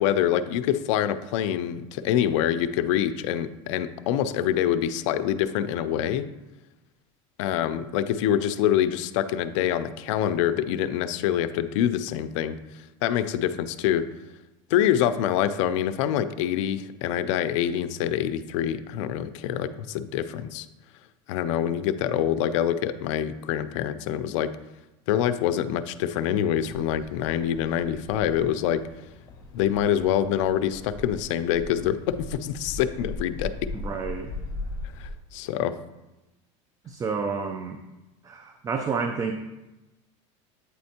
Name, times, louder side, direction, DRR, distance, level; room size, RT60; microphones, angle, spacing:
voice 1, 0.0-6.3 7.4-12.6 13.0-14.1 14.7-20.7 21.3-24.5 25.1-28.9 29.5-33.5 35.0-35.8, left 10 dB, 80° left, 13 dB, 0.4 m, -25 dB
sound 1, 26.6-35.1, left 2 dB, 25° left, 1.2 m, -39 dB
voice 2, 33.7-34.3 36.9-37.8 38.2-39.3, right 5 dB, 20° right, 6 dB, 0.4 m, -30 dB
8.3 x 4.2 x 2.8 m, 1.0 s
supercardioid pair, 125°, 16 cm